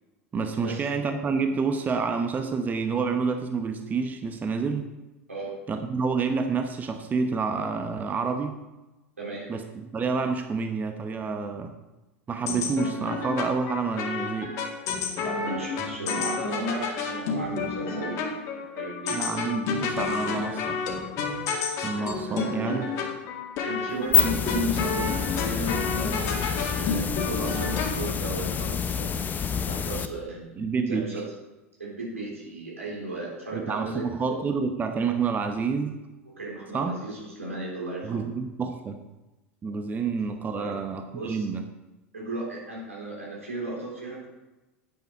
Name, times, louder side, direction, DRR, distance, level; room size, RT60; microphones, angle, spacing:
voice 1, 0.3-4.9 5.7-8.6 9.5-11.7 12.3-14.6 15.8-16.1 19.1-20.8 21.8-22.9 30.6-31.1 33.5-36.0 36.7-37.0 38.0-39.0 39.6-41.6, right 5 dB, 25° right, 6 dB, 0.9 m, -28 dB
voice 2, 9.2-9.5 15.2-19.2 21.9-23.1 23.6-30.6 30.9-31.3 31.8-34.4 36.4-38.3 40.5-40.8 41.1-41.5 42.1-44.3, right 1 dB, 85° right, -4 dB, 3.7 m, -35 dB
sound 1, 12.4-28.1, left 4 dB, 45° left, 2.0 m, -31 dB
sound 2, 23.9-30.1, left 7 dB, 25° left, 0.7 m, -28 dB
9.3 x 9.2 x 4.7 m, 1.1 s
figure-of-eight pair, 85°, 7 cm